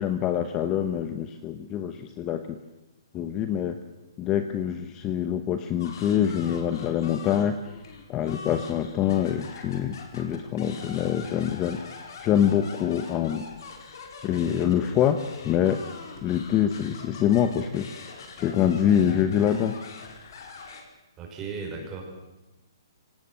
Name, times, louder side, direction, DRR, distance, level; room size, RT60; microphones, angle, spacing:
voice 1, 0.0-2.6 3.1-3.8 4.2-7.6 8.1-11.8 12.2-13.4 14.2-15.2 15.4-15.8 16.2-17.9 18.4-19.8, left 9 dB, 20° left, 8 dB, 1.0 m, -25 dB
sound 1, 5.8-20.8, left 5 dB, 55° left, 4.5 m, -43 dB
voice 2, 21.2-22.0, right 5 dB, 15° right, 0 dB, 5.6 m, -35 dB
24.0 x 18.0 x 7.8 m, 1.0 s
hypercardioid pair, 165°, 2 cm